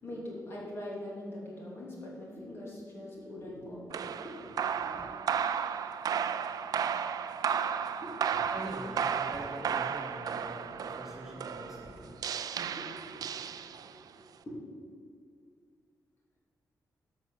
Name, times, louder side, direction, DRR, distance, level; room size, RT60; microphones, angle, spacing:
voice 1, 0.0-5.0 5.2-5.3 8.0-8.1 8.4-8.5 11.2-11.3 12.8-13.2 14.4-14.6, left 1 dB, 35° left, -4 dB, 2.9 m, -43 dB
sound 1, 3.9-14.1, right 7 dB, 70° right, 0.5 m, -34 dB
voice 2, 4.7-5.2 8.5-12.2, equal, 5° right, -5 dB, 2.1 m, -43 dB
12.0 x 6.3 x 6.5 m, 2.2 s
wide cardioid pair, 160°, 7 cm